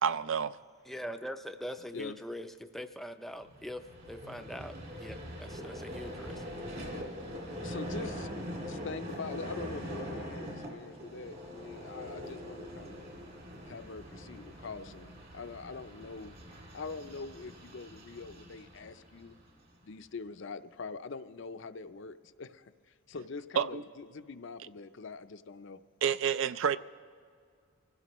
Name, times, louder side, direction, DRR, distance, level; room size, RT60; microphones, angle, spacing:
voice 1, 0.0-0.6 23.6-23.8 26.0-26.8, right 7 dB, 60° right, 0.4 m, -29 dB
voice 2, 0.9-3.8 4.1-6.4, equal, ahead, 0.4 m, -42 dB
Vehicle, 3.4-19.7, equal, 45° right, 2.3 m, -43 dB
voice 3, 7.6-8.3 8.6-13.0 13.6-16.4 16.7-19.4 19.8-25.8, left 4 dB, 55° left, 0.5 m, -43 dB
25.0 x 15.5 x 3.1 m
head